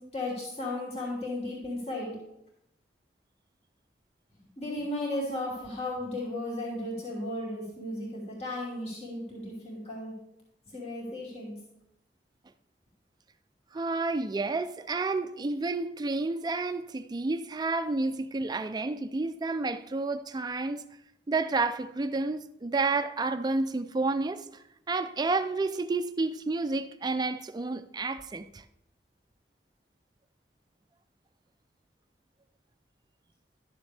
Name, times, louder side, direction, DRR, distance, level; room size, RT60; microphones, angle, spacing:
voice 1, 0.1-2.1 4.6-10.1 10.7-11.5, left 1 dB, 35° left, 2.8 m, -35 dB
voice 2, 13.7-20.8 21.3-28.6, right 3 dB, 25° right, 0.4 m, -30 dB
12.0 x 7.0 x 3.4 m
head